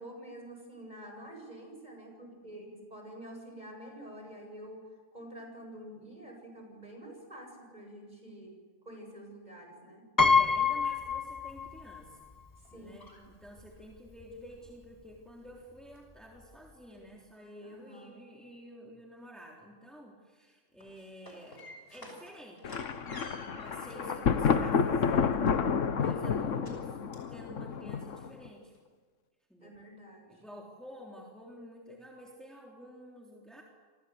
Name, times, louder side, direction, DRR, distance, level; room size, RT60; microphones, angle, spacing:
voice 1, 0.0-4.8 5.1-8.5 8.8-10.0 12.7-13.2 17.6-18.2 23.9-24.4 29.6-30.3, right 1 dB, 35° right, 2 dB, 7.9 m, -48 dB
Piano, 10.2-12.0 12.3-12.4 13.6-13.7 14.0-14.2, left 5 dB, 15° left, 0.9 m, -26 dB
voice 2, 10.3-12.3 12.7-21.6 21.9-22.8 23.6-25.4 25.9-27.0 27.3-28.7 29.5-29.7 30.3-33.6, equal, ahead, -2 dB, 3.5 m, -50 dB
sound 1, 12.6-13.9 14.4-14.7 15.1-15.5 15.9-16.5 16.9-17.0 17.3-18.0 18.3-18.4 20.6-24.3 24.7-25.9 26.6-26.8 27.1-27.3 27.7-27.8 28.2-28.3 28.7-28.8, left 1 dB, 45° left, 6.3 m, -52 dB
Thunder, 22.6-28.5, left 6 dB, 75° left, 1.5 m, -30 dB
29.0 x 24.5 x 8.0 m, 1.5 s
omnidirectional pair, 1.3 m